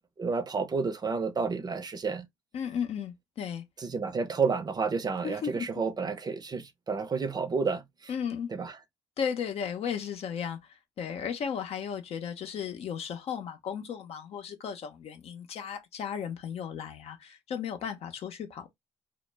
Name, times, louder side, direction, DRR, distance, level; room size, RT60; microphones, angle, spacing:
voice 1, 0.2-2.3 3.8-7.8 8.5-8.7, right 5 dB, 35° right, 0.6 m, -30 dB
voice 2, 2.5-3.6 5.2-5.7 8.1-8.5 9.2-18.7, left 7 dB, 65° left, 0.6 m, -35 dB
2.1 x 2.0 x 3.2 m
supercardioid pair, 60°, 11 cm